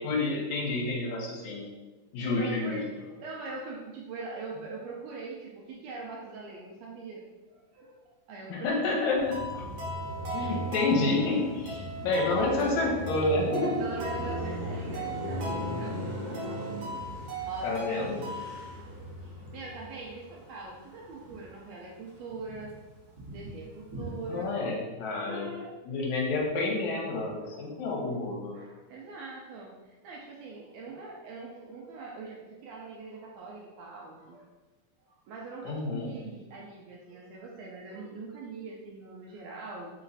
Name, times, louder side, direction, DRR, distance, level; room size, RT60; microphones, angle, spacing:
voice 1, 0.0-1.7 2.1-2.8 8.5-9.2 9.5-9.6 10.3-13.8 17.6-18.2 24.3-25.5 25.9-28.5 35.6-36.1, left 3 dB, 75° left, -2 dB, 2.0 m, -29 dB
voice 2, 2.2-9.0 9.3-9.4 10.4-10.6 12.5-12.8 13.8-16.6 17.4-18.1 18.4-22.7 23.3-24.7 25.0-25.7 27.3-27.5 28.5-34.5 35.0-39.9, right 3 dB, 80° right, -3 dB, 1.6 m, -43 dB
Car passing by, 9.2-21.6 22.0-24.5, equal, 40° right, 1.7 m, -38 dB
sound 1, 9.3-18.7, right 1 dB, 65° right, 2.1 m, -39 dB
4.9 x 3.0 x 2.6 m, 1.2 s
omnidirectional pair, 3.5 m